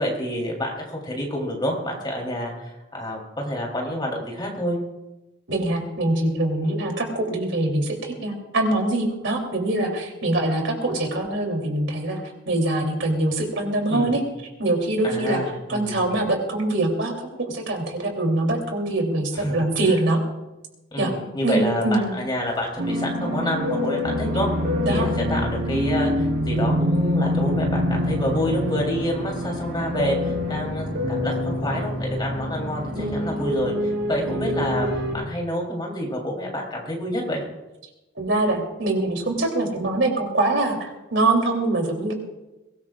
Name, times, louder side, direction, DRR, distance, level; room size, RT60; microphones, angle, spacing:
voice 1, 0.0-4.8 6.6-6.7 13.9-14.2 15.0-16.0 19.3-20.0 20.9-24.5 24.9-37.4, equal, 25° left, -1 dB, 3.6 m, -28 dB
voice 2, 5.5-12.2 12.5-14.2 14.6-15.4 15.7-17.1 17.4-20.2 21.0-21.1 21.4-22.1 24.8-25.1 38.2-42.1, right 2 dB, 70° right, 1 dB, 3.3 m, -23 dB
Fixed-wing aircraft airplane, 22.0-27.4 27.7-33.6, left 6 dB, 55° right, 2.5 m, -34 dB
sound 1, 22.8-35.1, equal, 90° right, 4.8 m, -26 dB
22.5 x 19.5 x 2.5 m, 1.0 s
head